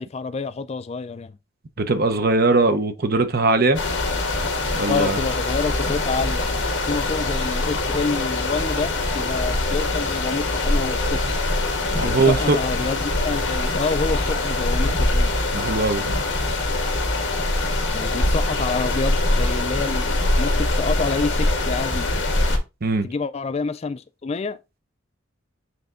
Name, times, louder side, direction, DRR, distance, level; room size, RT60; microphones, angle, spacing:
voice 1, 0.0-1.3 4.9-11.2 12.0-15.3 17.9-22.1 23.0-24.6, left 4 dB, 30° left, 0.3 m, -28 dB
voice 2, 1.8-3.8 4.7-5.2 11.9-12.6 15.5-16.1 22.8-23.1, right 3 dB, 50° right, 0.8 m, -20 dB
sound 1, 3.7-22.6, left 2 dB, 60° left, 1.8 m, -23 dB
7.9 x 3.3 x 3.7 m
head